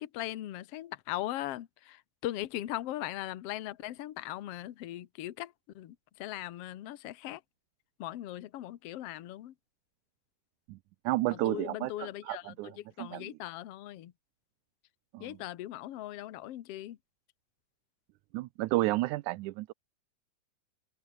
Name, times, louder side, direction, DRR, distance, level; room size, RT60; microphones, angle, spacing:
voice 1, 0.0-7.4 8.0-9.5 11.3-14.1 15.2-17.0, left 14 dB, 60° left, 1.7 m, -39 dB
voice 2, 11.0-13.3 15.1-15.4 18.3-19.7, right 19 dB, 80° right, 1.9 m, -32 dB
open air
omnidirectional pair, 3.9 m